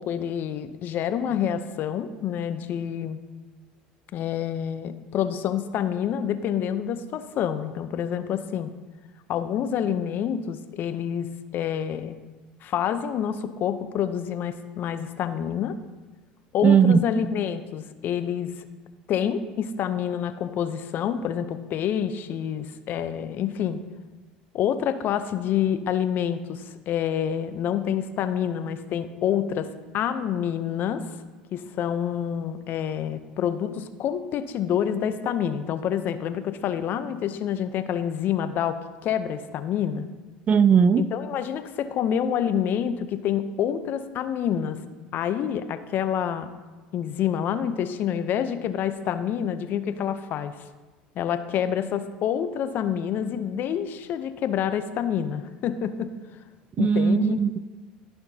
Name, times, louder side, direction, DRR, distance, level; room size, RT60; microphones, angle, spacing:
voice 1, 0.0-3.2 4.1-8.7 9.3-12.2 12.6-15.8 16.5-18.7 19.1-23.8 24.5-29.7 29.9-31.0 31.5-40.0 41.0-44.8 45.1-46.5 46.9-50.5 51.2-56.1 56.8-57.5, left 9 dB, 50° left, 0.6 m, -27 dB
voice 2, 16.6-17.2 40.5-41.1 56.8-57.6, right 7 dB, 35° right, 0.4 m, -19 dB
14.0 x 5.8 x 2.8 m
hypercardioid pair, 80°, 4 cm